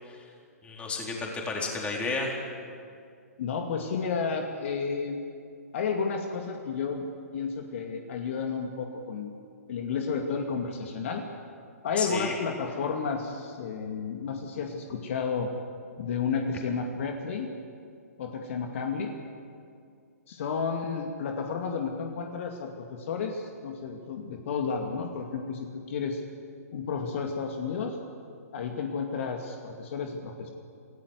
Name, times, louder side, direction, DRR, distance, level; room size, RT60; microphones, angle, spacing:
voice 1, 0.6-2.4 12.0-12.4, left 3 dB, 15° left, -1 dB, 4.2 m, -32 dB
voice 2, 3.4-5.2 5.7-7.1 7.3-9.3 9.7-11.2 11.8-15.5 16.0-17.5 18.2-19.1 20.3-26.2 26.7-28.0 28.5-30.5, left 5 dB, 50° left, 3 dB, 2.3 m, -32 dB
27.0 x 16.5 x 8.3 m, 2.3 s
figure-of-eight pair, 130°, 9 cm